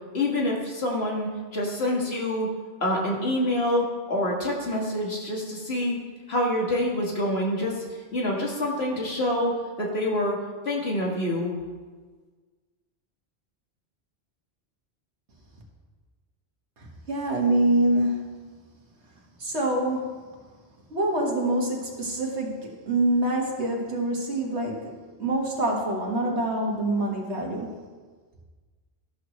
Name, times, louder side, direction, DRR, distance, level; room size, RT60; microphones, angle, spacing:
voice 1, 0.1-2.5 2.8-6.0 6.3-7.8 8.1-10.4 10.7-11.5, left 1 dB, 70° left, -2 dB, 1.9 m, -26 dB
voice 2, 16.8-18.6 19.4-20.3 20.9-27.8, right 1 dB, 80° right, -1 dB, 1.7 m, -26 dB
13.0 x 6.4 x 3.1 m, 1.4 s
omnidirectional pair, 1.1 m